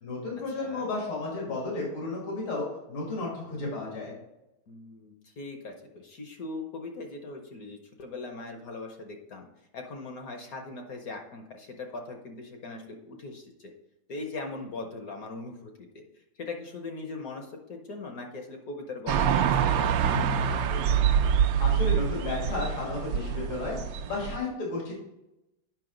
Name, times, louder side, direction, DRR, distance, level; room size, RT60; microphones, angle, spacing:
voice 1, 0.0-4.1 21.6-24.9, left 3 dB, 85° left, -3 dB, 2.9 m, -33 dB
voice 2, 0.6-0.9 4.7-9.4 9.7-13.7 14.1-15.7 16.4-20.9, left 3 dB, 55° left, 4 dB, 1.1 m, -40 dB
sound 1, 19.1-24.4, right 8 dB, 70° right, 1.1 m, -25 dB
8.9 x 5.7 x 3.8 m, 0.93 s
omnidirectional pair, 2.3 m